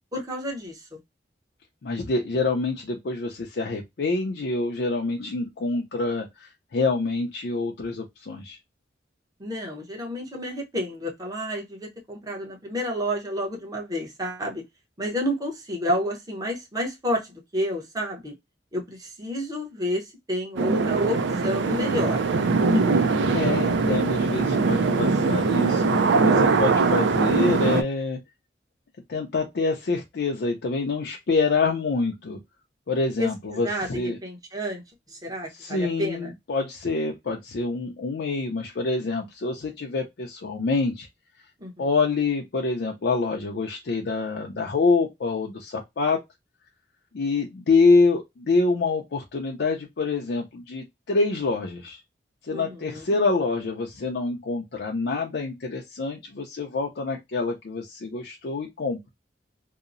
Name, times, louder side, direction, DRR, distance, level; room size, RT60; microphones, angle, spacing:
voice 1, 0.1-0.8 9.4-14.6 15.0-17.2 17.5-18.3 18.7-21.2 21.4-22.2 33.2-33.9 34.2-34.8 35.1-36.3 41.6-41.8 52.5-53.0, equal, 20° right, 0.8 m, -30 dB
voice 2, 1.8-8.6 23.3-28.2 29.1-32.4 32.9-34.2 35.5-41.1 41.8-46.2 47.1-52.0 52.5-59.0, left 3 dB, 65° left, 0.5 m, -26 dB
sound 1, 20.6-27.8, right 4 dB, 80° right, 0.4 m, -21 dB
2.8 x 2.0 x 2.4 m
head